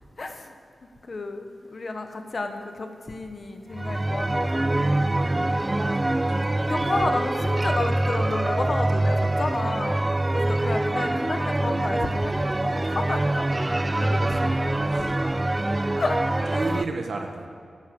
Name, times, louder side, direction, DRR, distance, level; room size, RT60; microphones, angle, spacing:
voice 1, 0.2-0.5 1.1-4.8 6.6-10.0 10.3-13.5 14.0-14.6 14.9-15.1 16.0-16.2, left 2 dB, 45° left, 5 dB, 1.4 m, -31 dB
sound 1, 3.7-16.8, right 1 dB, 20° right, 0.4 m, -24 dB
voice 2, 4.7-7.3 10.3-10.6 14.3-17.5, right 3 dB, 70° right, 3 dB, 1.3 m, -36 dB
12.0 x 11.5 x 8.1 m, 2.4 s
wide cardioid pair, 130°, 0 cm